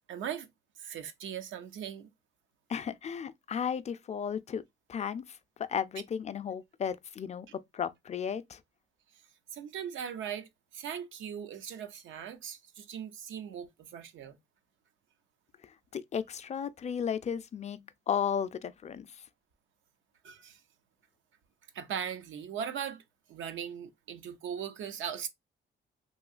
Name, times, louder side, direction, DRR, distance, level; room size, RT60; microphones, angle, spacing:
voice 1, 0.1-0.5 0.8-2.1 9.5-14.4 20.2-20.6 21.7-23.0 23.3-25.3, right 8 dB, 75° right, 0.6 m, -39 dB
voice 2, 2.7-4.6 4.9-8.6 15.6-19.2, left 7 dB, 35° left, 0.4 m, -34 dB
3.0 x 2.7 x 2.4 m
cardioid pair, 90°, 20 cm